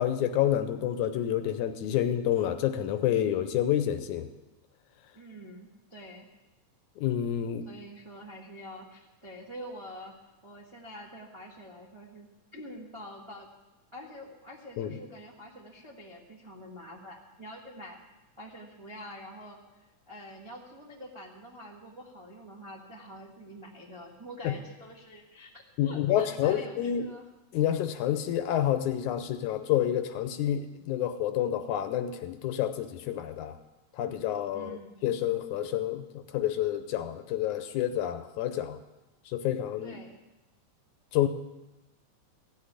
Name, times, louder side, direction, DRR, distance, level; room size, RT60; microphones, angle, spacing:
voice 1, 0.0-4.3 7.0-7.7 14.8-15.0 24.4-24.5 25.8-27.0 27.5-33.6 33.9-34.8 35.0-38.8 39.3-40.0 41.1-41.3, left 11 dB, 75° left, 9 dB, 2.0 m, -28 dB
voice 2, 5.1-6.2 7.6-10.1 10.4-13.5 13.9-18.0 18.4-27.3 34.5-35.2 39.8-40.2, equal, 30° right, -2 dB, 0.5 m, -46 dB
15.5 x 6.6 x 9.8 m, 1.0 s
omnidirectional pair, 3.7 m